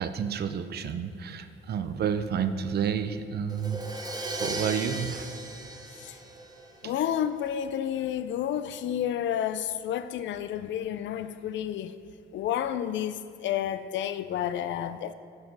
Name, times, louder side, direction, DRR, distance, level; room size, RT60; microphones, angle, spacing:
voice 1, 0.0-3.8 4.4-5.4 6.8-6.9, right 7 dB, 55° right, 10 dB, 0.5 m, -30 dB
Crash cymbal, 3.5-7.3, right 2 dB, 20° right, 0.9 m, -37 dB
voice 2, 6.8-11.9 12.3-15.1, left 10 dB, 70° left, 12 dB, 0.4 m, -30 dB
6.4 x 5.2 x 6.0 m, 2.4 s
cardioid pair, 90°, 20 cm